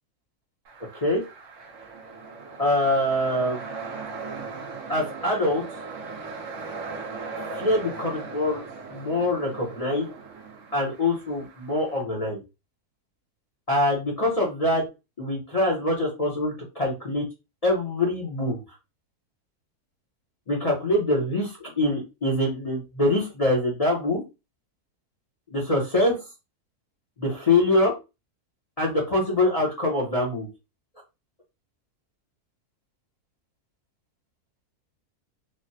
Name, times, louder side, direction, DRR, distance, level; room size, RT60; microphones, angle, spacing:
sound 1, 0.6-12.0, right 4 dB, 60° right, 1.0 m, -39 dB
voice 1, 2.6-3.6 4.9-5.6 7.5-8.6 8.9-10.1 10.7-12.4 13.7-14.8 15.2-17.2 17.6-18.6 20.5-24.2 25.5-26.2 27.2-27.9 28.8-30.5, left 1 dB, 35° left, -3 dB, 0.7 m, -24 dB
3.3 x 2.1 x 2.7 m, 0.27 s
omnidirectional pair, 1.6 m